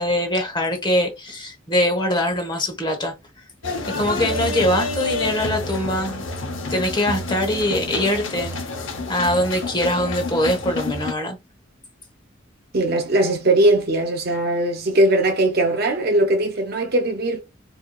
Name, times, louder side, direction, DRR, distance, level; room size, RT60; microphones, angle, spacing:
voice 1, 0.0-3.1 3.9-6.2 6.7-11.4, left 1 dB, 25° left, 1.0 m, -23 dB
sound 1, 3.6-11.1, left 2 dB, 80° left, 0.8 m, -28 dB
voice 2, 12.7-17.4, right 1 dB, 50° right, 0.6 m, -19 dB
4.5 x 2.7 x 2.3 m
head